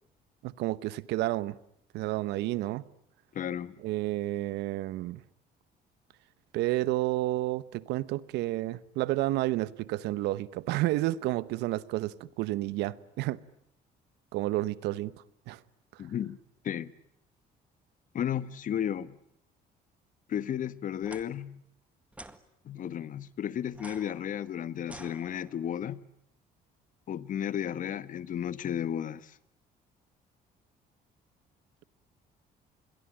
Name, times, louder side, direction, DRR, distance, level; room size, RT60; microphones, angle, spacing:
voice 1, 0.4-1.6 1.9-2.8 3.8-5.2 6.5-13.4 14.3-15.1 15.5-15.6, right 16 dB, 85° right, 1.0 m, -30 dB
voice 2, 3.3-3.7 16.0-16.4 16.6-16.9 18.1-19.2 20.3-21.6 22.6-26.0 27.1-29.3, left 9 dB, 50° left, 1.3 m, -33 dB
sound 1, 21.0-21.2 22.1-22.4 23.7-25.7, right 1 dB, 10° right, 1.8 m, -49 dB
27.5 x 22.0 x 8.9 m
cardioid pair, 110°, 17 cm